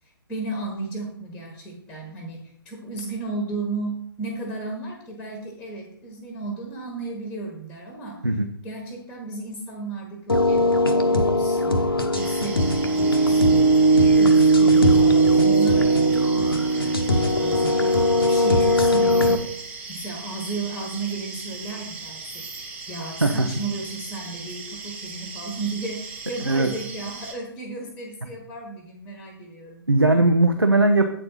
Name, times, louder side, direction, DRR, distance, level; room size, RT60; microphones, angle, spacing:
voice 1, 0.0-8.2 8.6-11.9 12.2-13.7 14.2-29.8, right 3 dB, 5° left, 2 dB, 1.3 m, -34 dB
sound 1, 10.3-19.4, right 1 dB, 75° left, 1.0 m, -18 dB
sound 2, 12.1-27.3, right 4 dB, 10° right, 0.9 m, -38 dB
voice 2, 29.9-31.1, right 2 dB, 90° right, 5 dB, 0.8 m, -18 dB
8.2 x 4.4 x 5.5 m, 0.70 s
figure-of-eight pair, 130°, 12 cm